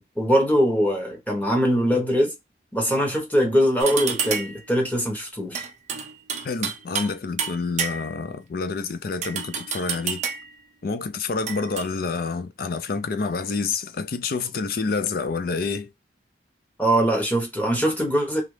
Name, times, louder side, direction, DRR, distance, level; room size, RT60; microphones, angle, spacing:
voice 1, 0.0-2.3 2.7-5.7 16.8-18.4, equal, 10° left, 1.0 m, -22 dB
sound 1, 3.8-4.6 5.5-7.1 7.4-8.3 9.2-10.5 11.5-11.9, right 6 dB, 40° right, 0.6 m, -29 dB
voice 2, 6.4-10.3 10.8-15.9, left 4 dB, 50° left, 0.4 m, -28 dB
3.0 x 2.4 x 3.2 m
head